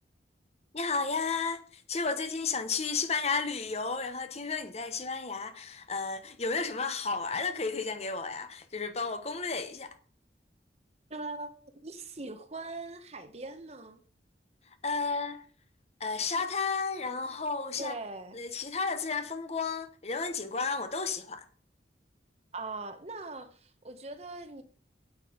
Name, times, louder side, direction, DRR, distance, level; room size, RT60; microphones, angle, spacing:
voice 1, 0.7-10.0 14.8-15.4 16.0-17.9 18.3-21.4, left 4 dB, 35° left, 1.1 m, -32 dB
voice 2, 11.1-14.0 17.8-18.4 22.5-24.6, right 3 dB, 35° right, 1.2 m, -41 dB
9.1 x 9.0 x 5.1 m
head